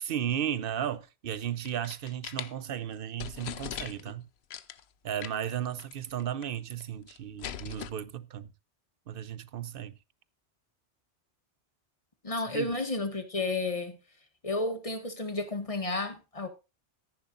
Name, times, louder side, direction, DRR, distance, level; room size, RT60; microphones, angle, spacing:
voice 1, 0.0-4.3 5.0-8.5 9.1-9.9 12.5-12.7, right 10 dB, 55° right, 0.9 m, -34 dB
sound 1, 1.4-2.5 2.9-3.0 3.2-4.1 4.5-4.8 5.2-5.5 5.8-5.9 6.2-6.8 7.1-7.9, left 9 dB, 65° left, 0.9 m, -40 dB
voice 2, 12.2-14.0 14.4-16.5, left 2 dB, 30° left, 1.8 m, -32 dB
13.5 x 10.5 x 2.6 m
omnidirectional pair, 1.2 m